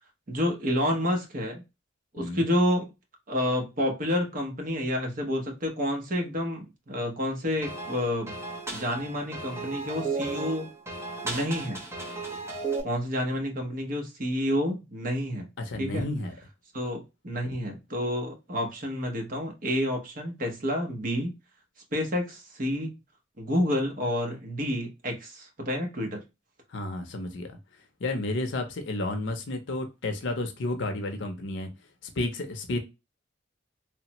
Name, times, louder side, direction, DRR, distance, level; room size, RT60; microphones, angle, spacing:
voice 1, 0.3-1.6 2.1-2.9 3.3-8.4 8.7-10.7 11.2-11.8 12.8-15.5 15.8-16.1 16.7-21.3 21.9-22.9 23.4-26.2, left 1 dB, 45° right, 0.8 m, -29 dB
sound 1, 7.6-12.8, right 3 dB, 15° right, 0.6 m, -34 dB
voice 2, 15.7-16.3 26.7-27.6 28.0-31.7 32.0-32.8, left 2 dB, 70° left, 0.6 m, -31 dB
3.2 x 2.1 x 2.8 m
head